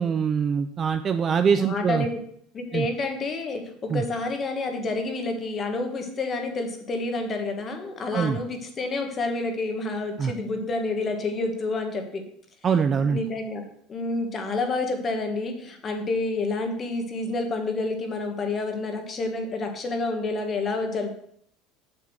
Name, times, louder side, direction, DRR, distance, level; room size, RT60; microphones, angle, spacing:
voice 1, 0.0-2.1 2.7-2.9 3.9-4.0 8.1-8.4 10.2-10.3 12.6-13.2, right 6 dB, 20° right, 9 dB, 0.4 m, -23 dB
voice 2, 1.6-2.1 2.5-12.2 13.1-21.1, left 3 dB, 20° left, 5 dB, 1.4 m, -29 dB
7.3 x 7.1 x 6.3 m, 0.67 s
cardioid pair, 180°, 0 cm